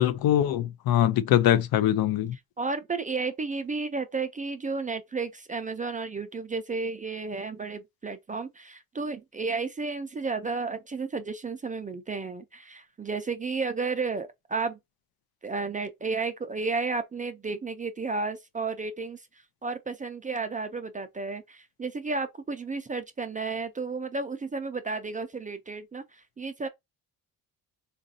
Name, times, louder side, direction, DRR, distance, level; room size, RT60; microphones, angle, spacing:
voice 1, 0.0-2.4, left 11 dB, 65° left, 0.5 m, -23 dB
voice 2, 2.6-14.8 15.4-19.3 19.6-26.7, right 4 dB, 20° right, 0.3 m, -32 dB
3.9 x 2.5 x 2.6 m
cardioid pair, 110°, 39 cm